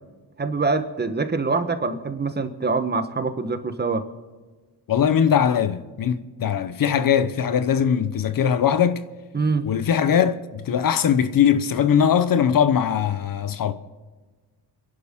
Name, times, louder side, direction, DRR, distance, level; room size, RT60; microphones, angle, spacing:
voice 1, 0.4-4.0 9.3-9.7, right 4 dB, 25° right, 1.1 m, -24 dB
voice 2, 4.9-9.0 9.6-13.7, left 8 dB, 55° left, 0.9 m, -20 dB
29.0 x 11.5 x 3.7 m
cardioid pair, 140°, 40 cm